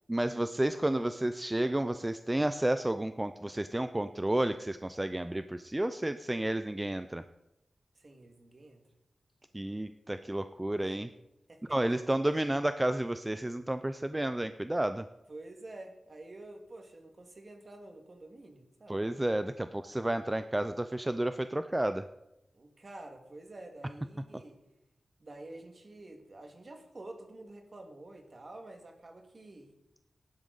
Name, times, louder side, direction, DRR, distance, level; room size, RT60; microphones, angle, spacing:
voice 1, 0.1-7.2 9.5-11.1 11.7-15.1 18.9-22.1, right 1 dB, 15° right, 10 dB, 0.4 m, -31 dB
voice 2, 8.0-8.9 11.5-11.6 15.3-19.1 22.5-24.6 25.2-29.7, right 2 dB, 40° right, 4 dB, 1.9 m, -49 dB
15.5 x 11.0 x 4.0 m, 0.90 s
wide cardioid pair, 110°, 0 cm